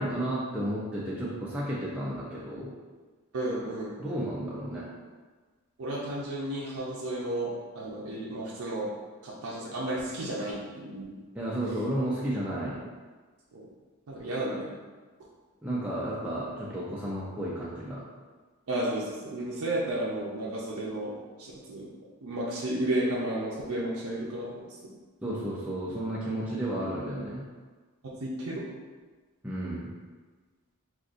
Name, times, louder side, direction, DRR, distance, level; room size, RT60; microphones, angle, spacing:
voice 1, 0.0-2.7 4.0-4.8 11.3-12.8 15.6-18.0 25.2-27.4 29.4-29.9, right 1 dB, 5° right, -7 dB, 0.4 m, -32 dB
voice 2, 3.3-4.2 5.8-8.9 9.2-11.2 13.5-13.7 14.1-14.7 18.7-21.9 22.2-24.5 28.2-28.6, right 1 dB, 85° right, -5 dB, 0.5 m, -33 dB
3.9 x 2.4 x 2.4 m, 1.4 s
head